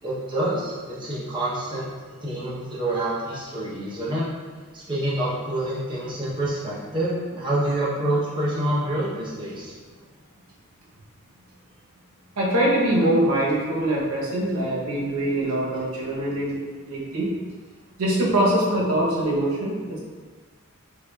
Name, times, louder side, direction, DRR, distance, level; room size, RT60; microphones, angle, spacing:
voice 1, 0.0-1.9 2.2-4.3 4.7-9.7, right 1 dB, 20° right, -9 dB, 0.7 m, -27 dB
voice 2, 12.4-17.3 18.0-20.0, right 1 dB, 85° right, -4 dB, 0.8 m, -23 dB
4.7 x 2.4 x 2.2 m, 1.5 s
head